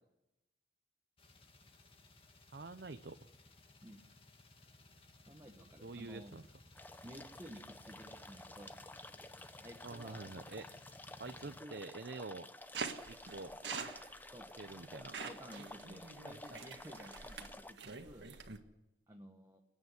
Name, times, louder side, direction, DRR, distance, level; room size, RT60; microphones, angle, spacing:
sound 1, 1.2-11.6, left 2 dB, 30° left, 2.0 m, -60 dB
voice 1, 2.5-3.2 5.8-6.4 9.8-12.5 13.1-13.6 14.6-15.2, right 3 dB, 65° right, 8 dB, 0.8 m, -47 dB
voice 2, 5.3-6.3 7.0-8.8 9.6-10.2 11.6-11.8 14.3-14.5 15.2-18.3 19.1-19.6, equal, 20° right, 1 dB, 1.4 m, -53 dB
sound 2, 6.7-17.7, left 2 dB, 10° left, 0.7 m, -52 dB
sound 3, 12.7-18.6, right 5 dB, 80° right, 1.7 m, -46 dB
29.5 x 9.8 x 9.6 m, 0.98 s
head